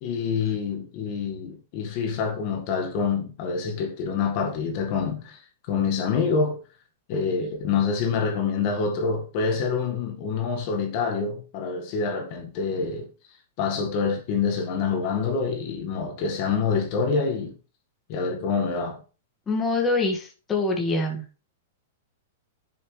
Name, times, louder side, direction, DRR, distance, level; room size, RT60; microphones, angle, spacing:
voice 1, 0.0-5.4 5.7-6.6 7.1-13.1 13.6-17.5 18.1-19.0, left 5 dB, 45° left, 1.8 m, -26 dB
voice 2, 19.5-21.2, left 2 dB, 15° left, 1.9 m, -25 dB
10.5 x 7.0 x 3.3 m
supercardioid pair, 150°, 0 cm